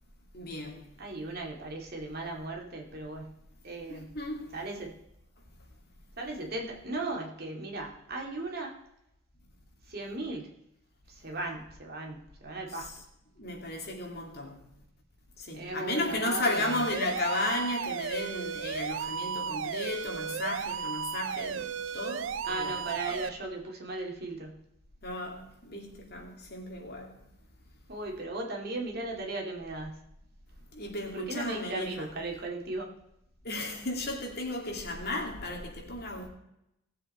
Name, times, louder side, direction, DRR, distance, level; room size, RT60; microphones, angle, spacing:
voice 1, 0.3-0.9 3.9-4.6 12.7-12.9 13.4-14.7 15.4-22.8 23.1-23.2 25.0-27.1 30.7-32.1 33.4-36.3, left 2 dB, 50° left, 2.6 m, -34 dB
voice 2, 1.0-4.1 4.5-5.0 6.2-8.7 9.9-10.5 11.1-12.9 15.5-16.8 22.5-24.6 27.9-30.0 31.1-32.9, right 2 dB, 50° right, 2.4 m, -37 dB
sound 1, 16.4-23.3, right 7 dB, 65° right, 0.4 m, -35 dB
18.5 x 7.6 x 4.4 m
head